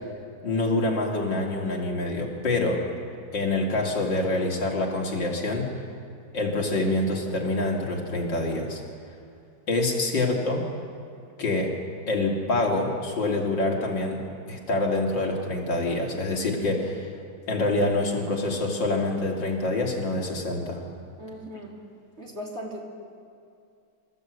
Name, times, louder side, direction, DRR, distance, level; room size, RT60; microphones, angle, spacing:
voice 1, 0.4-2.8 3.3-5.7 6.3-8.8 9.7-10.6 11.4-11.7 12.1-14.2 14.5-17.1 17.5-20.8, left 2 dB, 80° left, -1 dB, 3.4 m, -26 dB
voice 2, 21.2-21.7 22.2-22.8, equal, 35° right, -2 dB, 3.2 m, -38 dB
26.0 x 14.0 x 8.3 m, 2.5 s
omnidirectional pair, 2.0 m